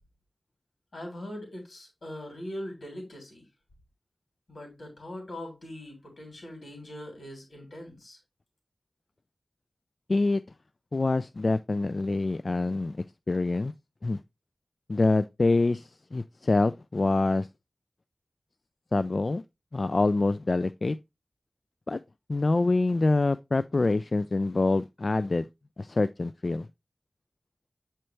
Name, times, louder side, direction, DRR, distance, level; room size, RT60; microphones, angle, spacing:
voice 1, 0.9-3.4 4.5-8.2, left 1 dB, 85° left, 3.1 m, -41 dB
voice 2, 10.1-10.4 10.9-13.0 13.3-13.7 14.0-14.2 14.9-17.5 18.9-19.4 19.7-21.0 21.9-22.0 22.3-25.5 25.8-26.7, left 2 dB, 60° left, 0.3 m, -25 dB
7.9 x 4.4 x 3.2 m
wide cardioid pair, 50°, 0 cm